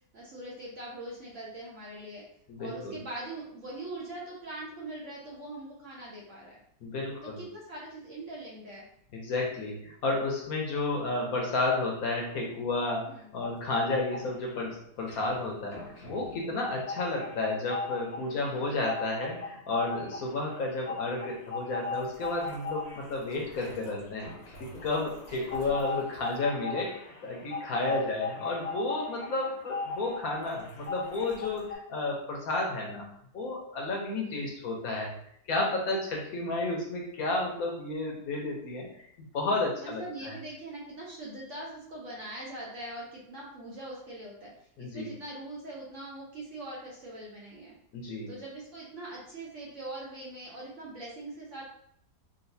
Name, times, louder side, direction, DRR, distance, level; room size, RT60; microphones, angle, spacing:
voice 1, 0.1-2.2 2.6-6.6 7.2-8.9 13.0-13.3 18.3-18.8 25.3-25.8 27.9-28.2 34.2-34.5 39.8-44.5 44.8-47.7 48.3-51.6, right 1 dB, 55° right, -4 dB, 0.9 m, -42 dB
voice 2, 2.5-3.0 6.8-7.4 9.1-13.1 13.3-24.3 24.6-33.1 33.3-35.1 35.5-39.1 39.3-40.3 44.8-45.1 47.9-48.3, left 2 dB, 65° left, -1 dB, 1.1 m, -32 dB
sound 1, 13.4-14.6 14.9-31.7, left 3 dB, 45° left, 0.5 m, -38 dB
3.9 x 2.4 x 2.6 m, 0.68 s
omnidirectional pair, 1.8 m